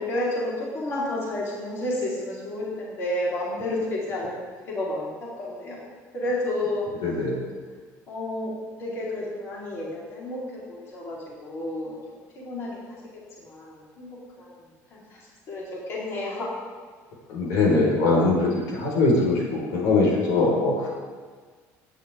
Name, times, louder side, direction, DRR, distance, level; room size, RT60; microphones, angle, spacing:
voice 1, 0.0-6.8 8.1-8.5 8.8-13.0 13.4-16.5, left 1 dB, 45° left, -6 dB, 4.3 m, -31 dB
voice 2, 7.0-7.4 17.3-20.9, left 3 dB, 85° left, -3 dB, 5.1 m, -22 dB
20.5 x 10.0 x 3.7 m, 1.5 s
cardioid pair, 160°, 6 cm